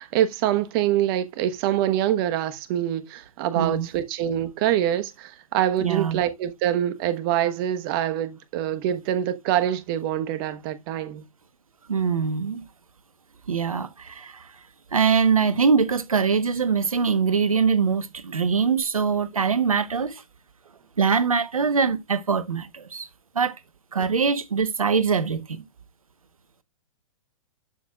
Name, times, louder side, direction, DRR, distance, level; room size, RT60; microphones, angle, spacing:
voice 1, 0.0-11.2, right 11 dB, 40° right, 1.2 m, -25 dB
voice 2, 3.5-3.9 5.8-6.2 11.9-12.6 13.5-14.5 14.9-20.2 21.0-23.1 23.3-23.5 23.9-25.6, right 5 dB, 85° right, 1.1 m, -23 dB
12.0 x 6.1 x 2.4 m
hypercardioid pair, 115°, 18 cm